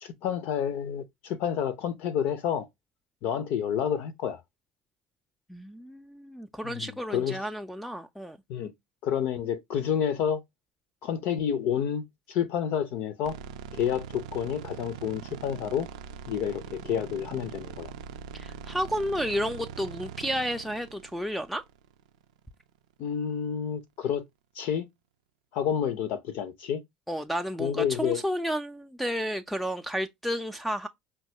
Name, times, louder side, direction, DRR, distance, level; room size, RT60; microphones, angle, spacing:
voice 1, 0.0-2.7 3.2-4.4 6.6-7.4 8.5-8.7 9.0-10.4 11.0-13.4 13.7-15.9 16.3-17.9 23.0-24.2 24.5-24.9 25.5-26.8 27.6-28.2, left 8 dB, 60° left, 0.5 m, -29 dB
voice 2, 5.5-8.4 18.3-21.6 27.1-30.9, equal, 5° left, 0.4 m, -32 dB
sound 1, 13.2-22.4, right 7 dB, 75° right, 0.4 m, -42 dB
5.6 x 2.3 x 2.8 m
hypercardioid pair, 60°, 4 cm